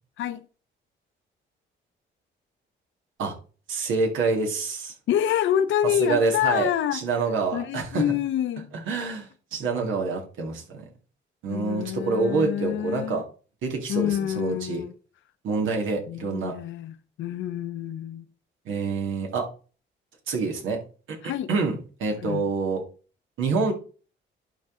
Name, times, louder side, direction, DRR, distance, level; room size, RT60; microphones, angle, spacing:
voice 1, 3.7-4.9 6.0-8.0 8.7-10.9 11.4-13.2 13.6-14.8 15.4-16.5 18.7-19.5 20.3-20.8 21.1-21.2 21.5-21.7 22.0-22.8 23.4-23.7, right 4 dB, 80° right, 2.1 m, -27 dB
voice 2, 5.1-7.0 7.5-8.7 11.5-13.2 13.9-14.9 16.1-18.3 21.2-21.5 22.2-22.5, left 10 dB, 75° left, 0.7 m, -27 dB
11.5 x 3.8 x 3.8 m
cardioid pair, 90°, 20 cm